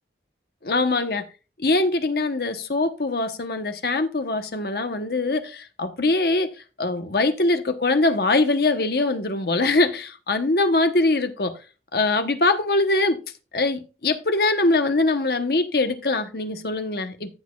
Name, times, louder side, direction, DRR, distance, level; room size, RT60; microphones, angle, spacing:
voice 1, 0.6-1.2 1.6-6.5 6.8-11.5 11.9-13.2 13.5-17.3, left 2 dB, 60° left, 1.0 m, -22 dB
14.0 x 6.5 x 2.3 m
head